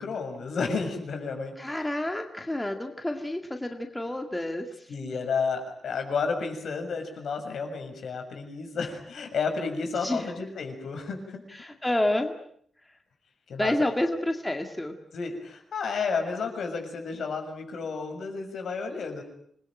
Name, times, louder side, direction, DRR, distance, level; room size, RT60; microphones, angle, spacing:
voice 1, 0.0-1.8 4.9-11.4 13.5-13.7 15.1-19.2, left 5 dB, 70° left, 5 dB, 6.8 m, -31 dB
voice 2, 1.6-4.7 10.0-10.3 11.5-12.4 13.6-14.9, left 1 dB, 10° left, 4 dB, 2.1 m, -29 dB
27.0 x 22.0 x 9.0 m, 0.66 s
wide cardioid pair, 175°, 0 cm